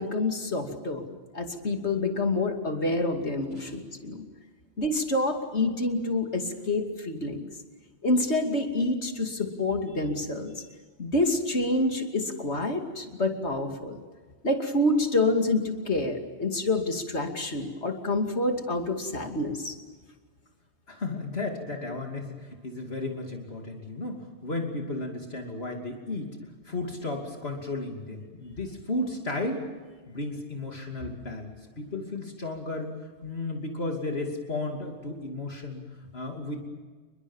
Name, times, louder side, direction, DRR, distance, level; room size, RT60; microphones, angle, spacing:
voice 1, 0.0-4.3 4.8-7.5 8.0-10.5 11.0-14.0 14.4-19.7, left 2 dB, 80° left, 4 dB, 3.0 m, -27 dB
voice 2, 20.9-26.4 26.6-29.6 30.1-32.9 33.2-36.6, left 2 dB, 65° left, 1 dB, 3.0 m, -34 dB
29.5 x 22.5 x 7.3 m, 1.4 s
omnidirectional pair, 1.1 m